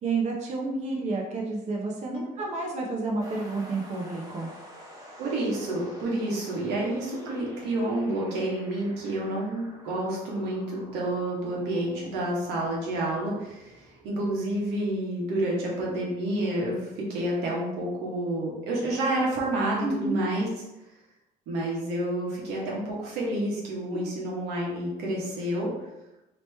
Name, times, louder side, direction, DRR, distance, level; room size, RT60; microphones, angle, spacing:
voice 1, 0.0-4.5 19.8-20.2, right 3 dB, 45° right, -1 dB, 0.7 m, -30 dB
sound 1, 3.2-14.8, equal, 20° right, 1.1 m, -49 dB
voice 2, 5.2-20.5 21.5-25.7, right 1 dB, 90° right, -3 dB, 1.1 m, -29 dB
3.0 x 2.9 x 3.3 m, 0.95 s
cardioid pair, 110°, 17 cm